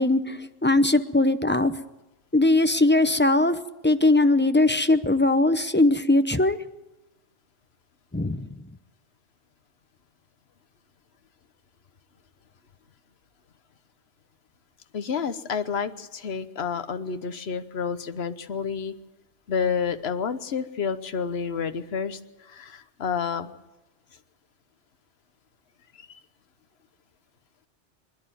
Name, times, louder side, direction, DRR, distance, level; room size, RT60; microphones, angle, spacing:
voice 1, 0.0-1.8 2.3-3.6 3.8-6.6 8.1-8.6, left 2 dB, 10° left, 10 dB, 0.7 m, -20 dB
voice 2, 14.9-18.9 19.5-23.5 25.9-26.2, left 6 dB, 65° left, 10 dB, 1.3 m, -30 dB
25.5 x 11.5 x 9.4 m, 1.0 s
omnidirectional pair, 1.2 m